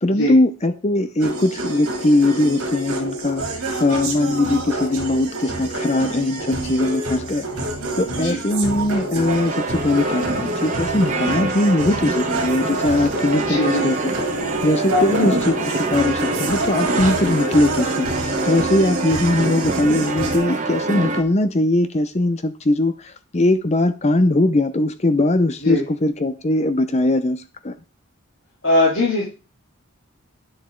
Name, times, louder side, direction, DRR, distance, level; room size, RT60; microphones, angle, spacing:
voice 1, 0.0-7.4 8.0-14.1 14.6-15.5 15.9-27.7, left 2 dB, 30° left, 0.6 m, -20 dB
sound 1, 1.2-20.4, right 2 dB, 70° right, 2.6 m, -27 dB
sound 2, 9.3-21.2, right 3 dB, 35° right, 1.1 m, -26 dB
voice 2, 13.4-13.8 14.9-15.3 25.6-25.8 28.6-29.2, left 1 dB, 60° left, 3.1 m, -20 dB
10.5 x 7.3 x 3.8 m
head